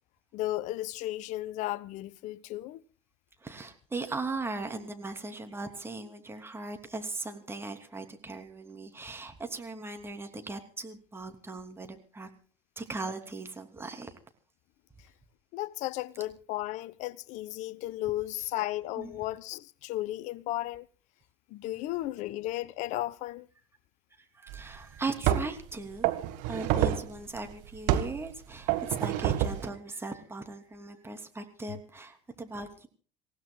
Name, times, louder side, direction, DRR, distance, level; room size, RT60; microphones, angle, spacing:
voice 1, 0.3-2.8 15.5-20.9 21.5-23.5, left 16 dB, 50° left, 0.7 m, -34 dB
voice 2, 3.4-12.3 12.8-14.2 19.0-19.1 24.2-26.1 26.5-32.9, right 3 dB, 15° right, 3.0 m, -38 dB
sound 1, 24.5-24.6 25.2-25.6 26.0-27.1 27.9-28.2 28.7-29.7, right 12 dB, 55° right, 1.6 m, -27 dB
27.5 x 16.5 x 2.3 m
figure-of-eight pair, 70°, 16 cm